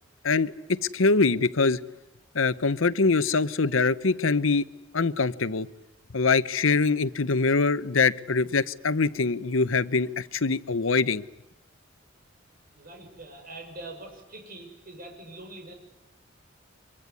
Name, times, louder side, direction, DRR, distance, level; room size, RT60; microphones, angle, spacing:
voice 1, 0.2-1.8 2.3-4.7 4.9-5.7 6.1-11.2, left 4 dB, 90° left, 16 dB, 0.9 m, -24 dB
voice 2, 12.7-15.7, right 2 dB, 45° right, 4 dB, 6.5 m, -43 dB
24.5 x 23.5 x 9.6 m, 0.92 s
head